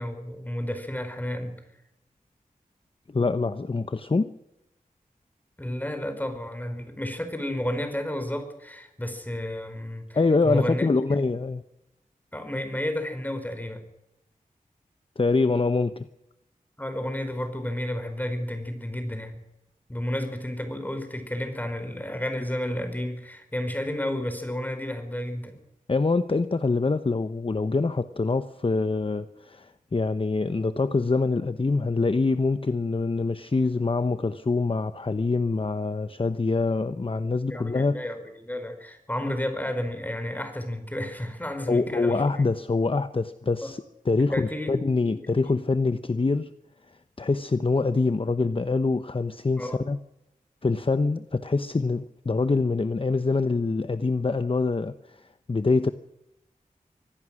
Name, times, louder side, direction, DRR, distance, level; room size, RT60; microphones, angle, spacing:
voice 1, 0.0-1.5 5.6-11.0 12.3-13.8 16.8-19.4 19.9-25.6 37.5-42.2 43.6-43.7 44.3-44.7 45.1-45.5 49.6-49.8, left 1 dB, 10° left, 5.1 m, -32 dB
voice 2, 3.1-4.3 10.1-11.6 15.2-16.1 25.9-38.0 41.7-46.5 47.2-50.0 50.6-55.9, left 3 dB, 40° left, 0.9 m, -25 dB
25.0 x 17.0 x 6.4 m
wide cardioid pair, 70°, 14 cm